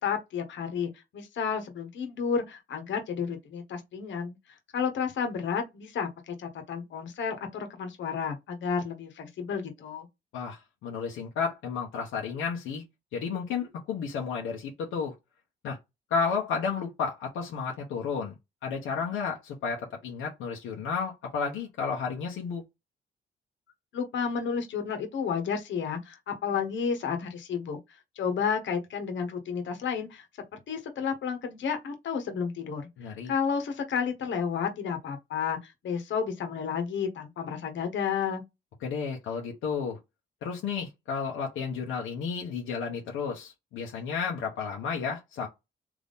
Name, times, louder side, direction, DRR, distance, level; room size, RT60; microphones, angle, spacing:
voice 1, 0.0-4.4 4.7-10.1 23.9-27.8 28.2-30.3 30.7-38.4, left 6 dB, 70° left, 1.3 m, -31 dB
voice 2, 10.3-12.8 13.1-15.1 15.6-15.8 16.1-18.3 18.6-22.6 33.0-33.3 38.8-40.0 40.4-45.5, left 5 dB, 85° left, 1.0 m, -32 dB
3.6 x 2.9 x 4.0 m
cardioid pair, 90°, 20 cm